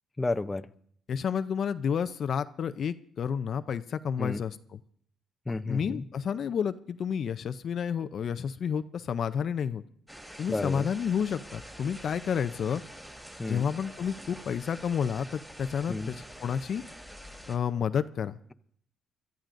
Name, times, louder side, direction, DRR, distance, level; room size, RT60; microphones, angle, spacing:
voice 1, 0.2-0.7 4.2-4.4 5.5-6.0 10.5-10.9 13.4-13.7 15.9-16.2, left 2 dB, 15° left, 9 dB, 0.6 m, -31 dB
voice 2, 1.1-4.8 5.7-9.8 10.4-12.8 13.4-16.8 17.5-18.4, left 7 dB, 60° left, 11 dB, 0.5 m, -30 dB
sound 1, 10.1-17.6, equal, 10° right, 3.7 m, -46 dB
25.5 x 13.0 x 2.6 m, 0.65 s
cardioid pair, 90°, 0 cm